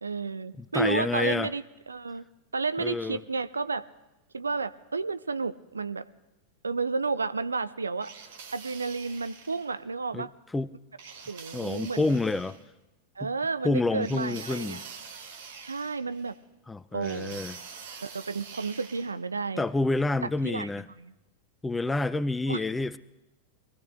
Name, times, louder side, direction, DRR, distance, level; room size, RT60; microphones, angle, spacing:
voice 1, 0.0-2.2 2.5-3.8 4.3-6.0 6.6-8.1 8.5-10.3 11.3-12.2 13.2-14.8 15.6-16.3 16.9-17.4 18.0-19.6 20.2-21.1 22.5-22.6, right 4 dB, 75° right, 15 dB, 0.5 m, -32 dB
voice 2, 0.7-1.5 2.8-3.2 10.1-10.3 10.5-10.7 11.5-12.6 13.2-13.3 13.6-14.8 16.7-17.6 19.6-20.9 21.6-23.0, left 2 dB, 10° left, 16 dB, 0.5 m, -28 dB
sound 1, 8.0-9.7 11.0-12.6 14.0-16.4 17.0-19.1, right 6 dB, 55° right, 1.9 m, -45 dB
22.5 x 14.0 x 3.8 m, 0.99 s
figure-of-eight pair, 90°, 0 cm